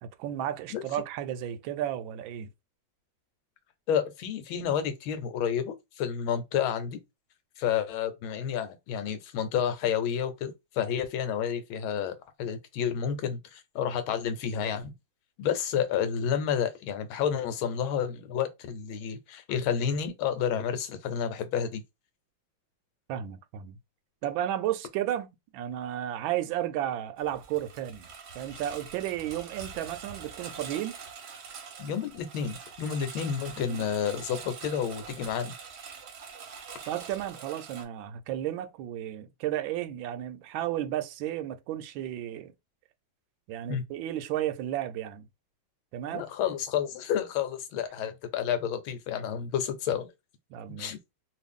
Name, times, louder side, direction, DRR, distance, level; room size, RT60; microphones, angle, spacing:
voice 1, 0.0-2.5 23.1-23.8 24.2-25.3 25.5-28.1 28.3-31.0 33.7-33.9 36.9-42.5 43.5-45.3 45.9-46.3 48.0-48.1 50.5-50.9, right 12 dB, 75° right, 1.3 m, -33 dB
voice 2, 3.9-7.0 7.6-14.9 15.4-21.8 31.8-35.5 43.7-43.8 46.1-50.1 50.8-51.0, left 8 dB, 80° left, 1.5 m, -30 dB
Engine, 27.2-37.8, right 6 dB, 60° right, 1.1 m, -44 dB
3.1 x 2.6 x 3.4 m
omnidirectional pair, 2.2 m